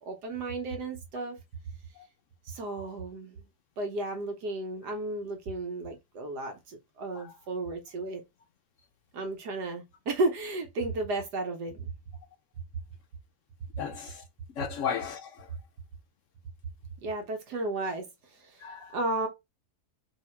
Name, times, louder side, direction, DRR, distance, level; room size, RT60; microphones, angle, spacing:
voice 1, 0.1-1.4 2.4-3.4 3.8-8.2 9.1-11.9 17.0-19.3, right 2 dB, 75° right, 1.4 m, -33 dB
voice 2, 13.8-14.2 14.5-15.5 18.6-19.0, left 7 dB, 70° left, 0.7 m, -35 dB
3.7 x 2.8 x 4.3 m
omnidirectional pair, 1.8 m